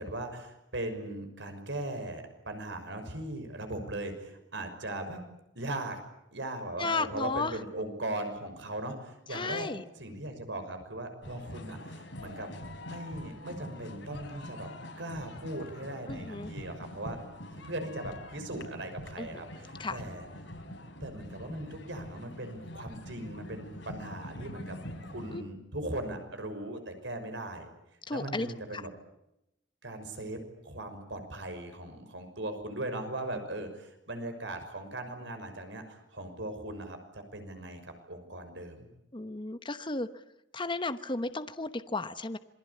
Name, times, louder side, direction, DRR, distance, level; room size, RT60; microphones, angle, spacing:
voice 1, 0.0-5.2 5.5-6.0 6.3-9.7 9.9-12.5 12.9-14.7 15.0-17.2 17.5-20.3 21.0-24.8 25.0-27.7 28.1-28.9 29.8-38.9, right 1 dB, 70° right, 7 dB, 6.1 m, -39 dB
voice 2, 6.8-7.6 9.3-9.8 16.1-16.5 19.2-19.3 19.8-20.0 25.3-25.4 28.1-28.5 28.7-28.8 39.1-40.1 40.5-42.4, left 3 dB, 25° left, 10 dB, 1.0 m, -33 dB
sound 1, 11.2-25.4, left 1 dB, 80° left, 5.2 m, -44 dB
27.5 x 22.5 x 8.5 m, 0.84 s
head